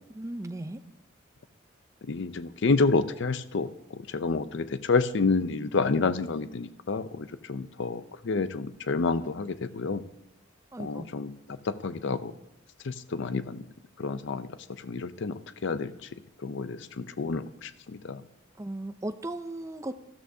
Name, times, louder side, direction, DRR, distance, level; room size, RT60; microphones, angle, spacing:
voice 1, 0.1-0.8 10.7-11.1 18.6-20.1, right 1 dB, 15° right, 9 dB, 0.5 m, -36 dB
voice 2, 2.1-3.7 4.1-10.0 10.8-11.3 11.7-12.3 12.9-13.6 14.0-14.5 14.8-15.9 16.4-17.7 18.0-18.2, left 4 dB, 60° left, 13 dB, 0.5 m, -29 dB
13.5 x 12.5 x 2.7 m, 0.88 s
head